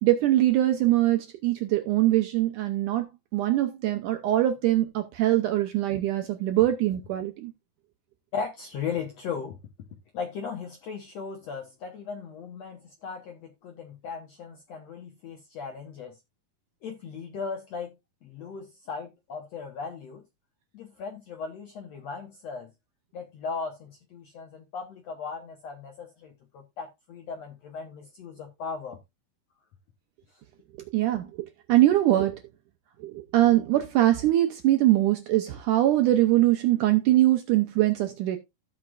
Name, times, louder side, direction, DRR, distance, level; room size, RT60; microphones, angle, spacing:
voice 1, 0.0-3.1 3.3-7.5 30.9-32.4 33.0-38.4, right 14 dB, 75° right, 1.9 m, -23 dB
voice 2, 8.3-9.6 10.1-16.2 16.8-17.9 18.2-20.2 20.7-22.7 23.1-29.0, left 5 dB, 70° left, 1.6 m, -37 dB
15.5 x 5.9 x 2.4 m
omnidirectional pair, 4.4 m